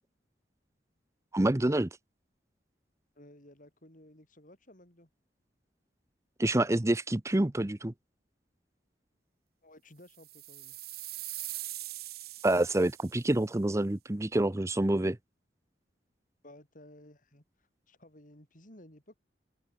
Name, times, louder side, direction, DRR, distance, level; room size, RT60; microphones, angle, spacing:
voice 1, 1.3-1.9 6.4-7.9 12.4-15.2, right 1 dB, 15° right, 0.7 m, -27 dB
voice 2, 3.1-5.1 9.6-10.8 16.4-17.4 17.9-19.2, left 1 dB, 50° left, 6.6 m, -55 dB
sound 1, 10.1-13.3, right 16 dB, 60° right, 1.7 m, -42 dB
head